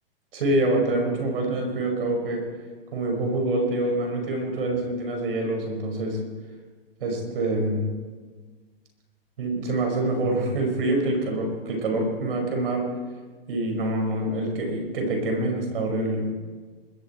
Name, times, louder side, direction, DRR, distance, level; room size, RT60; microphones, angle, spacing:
voice 1, 0.3-2.4 2.9-6.2 7.0-7.9 9.4-12.9 13.5-16.3, right 1 dB, 70° right, 2 dB, 5.4 m, -26 dB
21.0 x 13.5 x 4.5 m, 1.4 s
hypercardioid pair, 140°, 29 cm